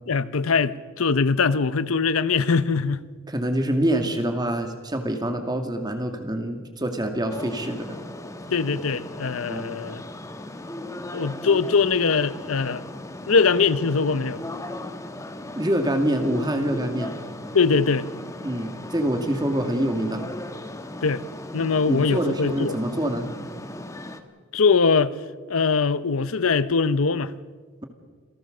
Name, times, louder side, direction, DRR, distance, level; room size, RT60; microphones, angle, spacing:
voice 1, 0.1-3.0 8.5-10.0 11.1-12.8 13.3-14.4 17.5-18.1 21.0-21.2 21.5-22.8 24.5-25.2 25.5-27.3, left 5 dB, 80° left, 0.8 m, -22 dB
voice 2, 3.3-8.0 9.5-9.7 15.5-17.1 18.4-20.2 21.9-23.3, right 1 dB, 20° right, 2.3 m, -25 dB
sound 1, 7.3-24.2, left 1 dB, 15° left, 1.3 m, -37 dB
27.5 x 17.5 x 6.7 m
head